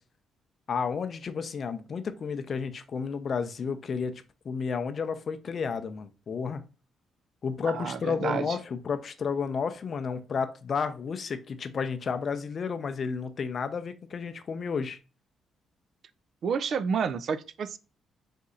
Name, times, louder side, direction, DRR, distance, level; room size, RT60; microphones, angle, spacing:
voice 1, 0.7-4.1 4.4-6.7 7.4-15.0, left 5 dB, 50° left, 0.5 m, -32 dB
voice 2, 7.6-8.6 16.4-17.8, right 6 dB, 60° right, 0.3 m, -30 dB
4.2 x 2.7 x 3.7 m
cardioid pair, 90°, 0 cm